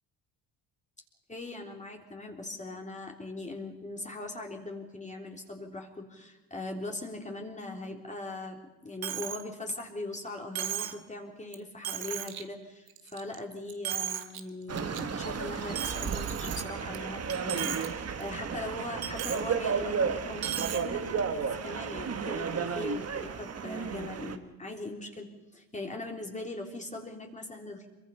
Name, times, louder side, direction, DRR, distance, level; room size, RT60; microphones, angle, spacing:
voice 1, 1.3-27.9, left 2 dB, 15° left, 1 dB, 3.5 m, -40 dB
Coin (dropping), 9.0-9.4 9.8-9.9 10.5-11.0 11.5-11.6 11.8-12.4 12.9-13.4 13.7-14.4 14.8-15.0 15.7-17.0 17.3-17.9 18.2-18.3 19.0-19.4 20.4-20.8, right 11 dB, 60° right, 1.8 m, -35 dB
sound 1, 14.7-24.4, right 6 dB, 35° right, 1.7 m, -33 dB
25.0 x 23.5 x 5.6 m, 1.1 s
cardioid pair, 95°, 40 cm